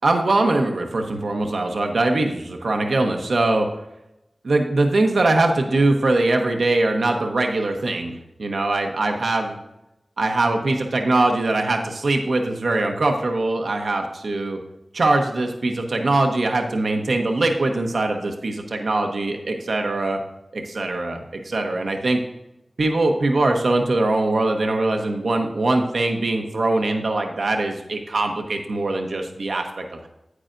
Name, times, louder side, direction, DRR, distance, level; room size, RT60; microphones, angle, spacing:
voice 1, 0.0-3.7 4.4-9.6 10.2-14.6 14.9-20.2 20.5-22.2 22.8-30.1, right 2 dB, 85° right, 3 dB, 0.9 m, -22 dB
9.6 x 8.7 x 2.6 m, 0.89 s
cardioid pair, 45°, 0 cm